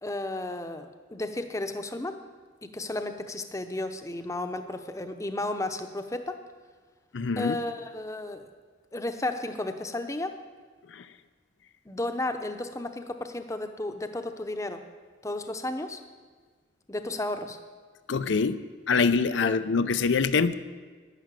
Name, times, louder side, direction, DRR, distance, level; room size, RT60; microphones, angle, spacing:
voice 1, 0.0-2.2 2.6-6.4 7.4-8.4 8.9-10.3 11.9-14.8 15.2-16.0 16.9-17.6 19.4-19.6, left 2 dB, 15° left, 8 dB, 0.7 m, -33 dB
voice 2, 7.1-7.6 10.9-11.0 18.1-18.6 18.9-20.5, left 5 dB, 75° left, 12 dB, 0.5 m, -24 dB
11.0 x 10.5 x 7.5 m, 1.5 s
head